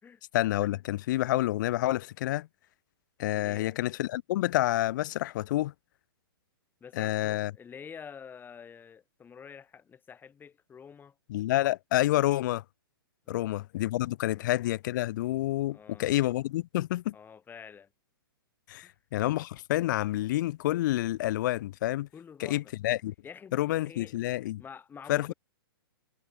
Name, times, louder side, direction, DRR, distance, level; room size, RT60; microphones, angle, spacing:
voice 1, 0.3-2.5 3.2-5.7 6.9-7.5 11.3-12.6 13.3-17.1 18.7-22.1 22.4-23.1 23.5-24.6 25.1-25.3, left 15 dB, 50° left, 1.2 m, -28 dB
voice 2, 3.4-3.8 6.8-11.1 13.3-13.6 14.3-14.4 15.7-16.2 17.1-17.9 18.8-18.9 22.1-22.7 23.2-24.1 24.6-25.3, left 7 dB, 15° left, 4.4 m, -48 dB
hypercardioid pair, 125°, 13 cm